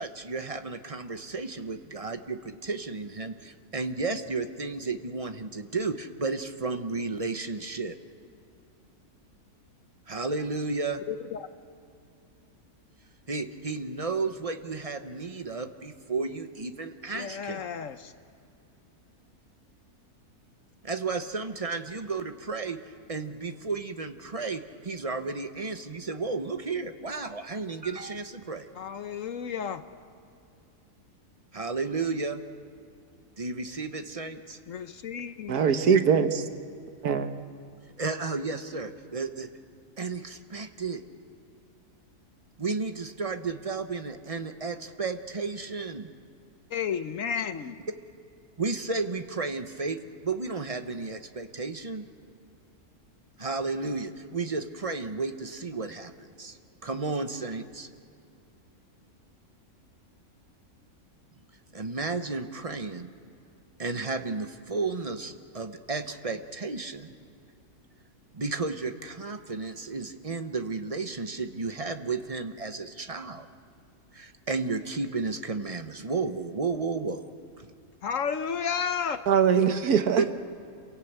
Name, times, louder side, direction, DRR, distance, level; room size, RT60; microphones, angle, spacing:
voice 1, 0.0-8.0 10.1-11.0 13.3-17.6 20.8-28.7 31.5-32.4 33.4-34.6 38.0-39.5 40.0-41.0 42.6-46.1 48.6-52.1 53.4-57.9 61.7-63.1 63.8-67.1 68.3-73.5 74.1-77.2 77.6-77.7 80.2-80.3, right 4 dB, 30° right, 0.8 m, -33 dB
voice 2, 11.1-11.5 17.1-18.1 28.8-29.8 34.7-35.6 46.7-47.8 78.0-79.2, left 7 dB, 60° left, 1.1 m, -32 dB
voice 3, 35.5-36.4 37.0-37.3 79.3-80.2, right 7 dB, 75° right, 1.6 m, -22 dB
27.5 x 17.0 x 8.2 m
omnidirectional pair, 1.6 m